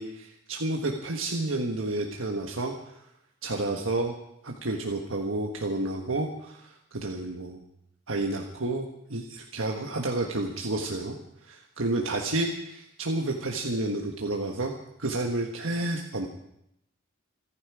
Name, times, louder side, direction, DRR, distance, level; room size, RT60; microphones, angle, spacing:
voice 1, 0.0-2.9 3.4-4.1 4.4-7.6 8.1-11.2 11.4-14.7 15.0-16.3, right 2 dB, 90° right, 1 dB, 1.6 m, -30 dB
26.5 x 10.5 x 4.9 m, 0.79 s
head